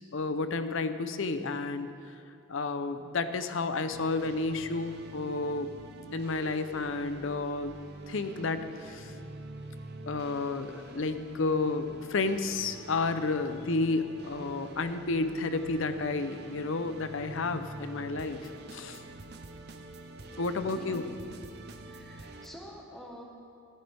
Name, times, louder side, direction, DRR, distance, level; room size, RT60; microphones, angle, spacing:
voice 1, 0.1-1.9 2.5-5.7 6.1-7.8 8.1-9.1 10.1-19.0 20.4-21.1, left 3 dB, 65° left, 10 dB, 0.6 m, -31 dB
sound 1, 3.9-22.5, right 2 dB, 50° right, 0.6 m, -46 dB
voice 2, 20.5-21.1 21.8-23.2, equal, ahead, -2 dB, 1.4 m, -47 dB
14.5 x 13.5 x 3.5 m, 2.4 s
head